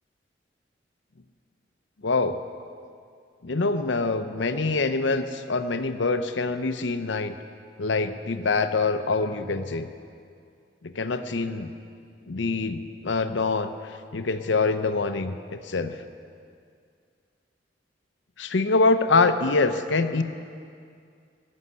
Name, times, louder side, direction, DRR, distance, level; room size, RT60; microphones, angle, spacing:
voice 1, 2.0-2.4 3.4-7.3 7.8-9.9 10.8-11.7 12.3-13.7 14.1-15.9 18.4-20.2, left 3 dB, 80° left, 9 dB, 0.7 m, -25 dB
15.0 x 6.5 x 9.8 m, 2.3 s
head